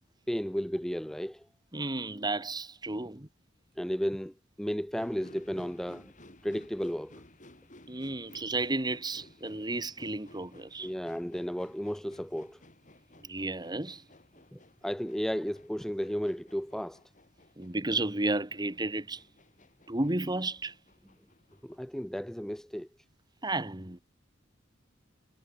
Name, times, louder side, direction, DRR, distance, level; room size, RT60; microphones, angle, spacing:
voice 1, 0.3-1.5 3.8-6.1 6.4-7.2 10.8-12.6 14.5-17.0 21.6-22.9, equal, ahead, 0.6 m, -34 dB
voice 2, 1.7-3.3 7.9-10.9 13.2-14.0 17.6-19.2 19.9-20.7 23.4-24.0, right 2 dB, 20° right, 1.9 m, -32 dB
sound 1, 5.0-21.8, left 1 dB, 40° left, 5.9 m, -57 dB
head